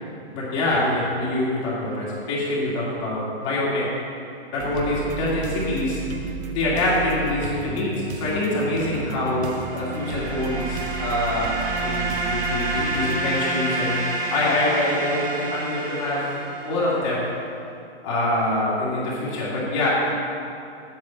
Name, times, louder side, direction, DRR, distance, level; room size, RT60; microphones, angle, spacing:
voice 1, 0.3-4.0 4.5-6.0 6.5-14.0 14.3-16.3 16.6-17.3 18.0-19.9, left 1 dB, 25° left, -7 dB, 2.3 m, -25 dB
sound 1, 4.6-13.2, right 6 dB, 80° right, 1.4 m, -33 dB
sound 2, 9.3-17.1, right 2 dB, 55° right, 2.8 m, -29 dB
8.5 x 6.2 x 8.3 m, 2.6 s
hypercardioid pair, 170°, 33 cm